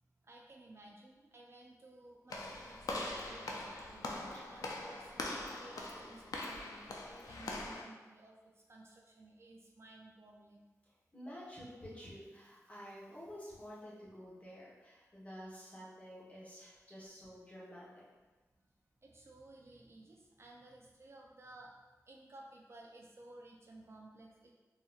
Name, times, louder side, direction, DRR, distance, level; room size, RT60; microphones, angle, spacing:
voice 1, 0.2-10.6 17.1-17.2 19.0-21.7 22.1-24.5, right 2 dB, 45° right, -1 dB, 0.4 m, -56 dB
Walk footsteps / Slam, 2.3-7.9, left 2 dB, 85° left, 0.4 m, -42 dB
voice 2, 11.1-18.0, equal, 25° left, -7 dB, 1.2 m, -50 dB
3.9 x 2.7 x 2.4 m, 1.2 s
wide cardioid pair, 80°, 6 cm